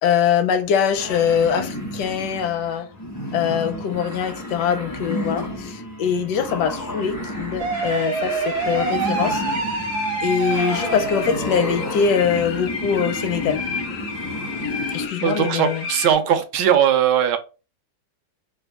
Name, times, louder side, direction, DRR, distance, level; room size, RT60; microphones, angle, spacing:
voice 1, 0.0-2.9 3.3-9.4 10.2-13.6 14.9-15.9, left 7 dB, 80° left, 1.1 m, -23 dB
sound 1, 0.9-15.1, left 1 dB, 20° left, 0.4 m, -31 dB
sound 2, 7.6-11.7, right 4 dB, 65° right, 0.7 m, -26 dB
sound 3, 7.7-16.1, left 5 dB, 60° left, 0.7 m, -33 dB
voice 2, 15.2-17.4, right 9 dB, 85° right, 1.2 m, -19 dB
3.4 x 2.2 x 3.4 m
omnidirectional pair, 1.8 m